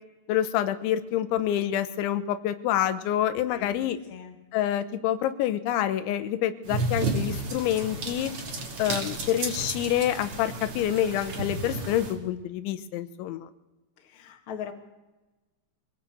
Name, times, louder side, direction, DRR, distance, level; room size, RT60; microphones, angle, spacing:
voice 1, 0.3-4.0 4.5-8.3 8.8-13.5, left 11 dB, 85° left, 12 dB, 3.3 m, -27 dB
voice 2, 3.5-3.8 4.1-4.4 14.0-14.7, left 8 dB, 40° left, 4 dB, 2.0 m, -40 dB
sound 1, 6.7-12.1, right 3 dB, 35° right, 2.8 m, -32 dB
23.5 x 17.5 x 7.8 m, 1.1 s
omnidirectional pair, 5.2 m